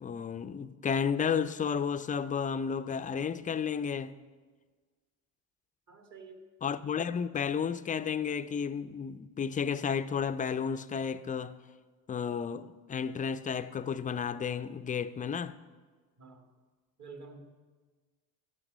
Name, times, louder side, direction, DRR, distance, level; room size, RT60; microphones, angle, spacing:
voice 1, 0.0-4.1 6.6-11.6 12.1-15.5, left 7 dB, 20° left, 0.4 m, -32 dB
voice 2, 5.9-6.4 16.2-16.5 17.0-17.5, right 4 dB, 40° right, 1.8 m, -49 dB
12.0 x 7.7 x 5.1 m
hypercardioid pair, 65°, 42 cm